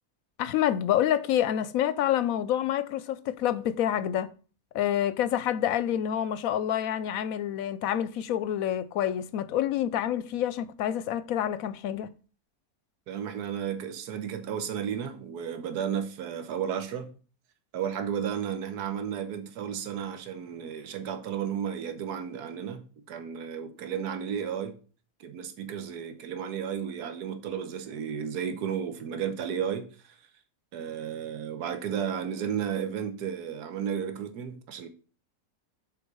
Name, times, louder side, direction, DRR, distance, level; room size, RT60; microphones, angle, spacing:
voice 1, 0.4-4.3 4.7-12.1, left 11 dB, 70° left, 0.9 m, -27 dB
voice 2, 13.1-17.1 17.7-22.8 23.1-24.8 25.2-30.2 30.7-34.9, right 8 dB, 80° right, 1.4 m, -33 dB
6.6 x 4.6 x 5.4 m
omnidirectional pair, 1.7 m